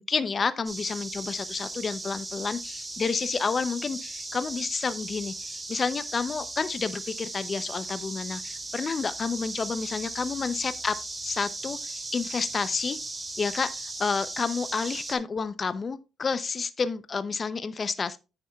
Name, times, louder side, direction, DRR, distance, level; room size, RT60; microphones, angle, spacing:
voice 1, 0.0-10.9 11.2-13.0 13.4-13.7 14.0-18.2, left 5 dB, 40° left, 0.5 m, -30 dB
sound 1, 0.6-15.1, right 2 dB, 25° right, 2.5 m, -37 dB
9.4 x 9.3 x 2.3 m
cardioid pair, 90°, 0 cm